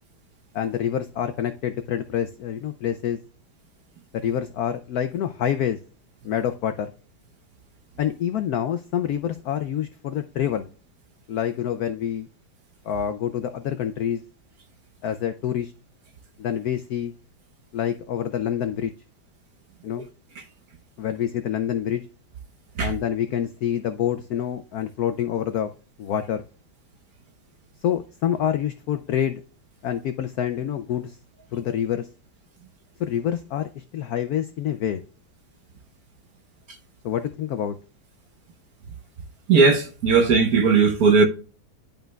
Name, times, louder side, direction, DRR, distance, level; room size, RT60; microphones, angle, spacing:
voice 1, 0.5-3.2 4.1-5.8 6.2-6.9 8.0-10.7 11.3-12.3 12.8-14.2 15.0-15.7 16.4-17.1 17.7-18.9 19.8-20.1 21.0-22.0 22.8-25.7 26.0-26.4 27.8-29.4 29.8-31.2 31.5-32.1 33.0-35.0 37.0-37.8, left 9 dB, 85° left, 0.8 m, -27 dB
voice 2, 39.5-41.2, right 4 dB, 55° right, 1.2 m, -17 dB
11.0 x 5.2 x 2.3 m
omnidirectional pair, 2.2 m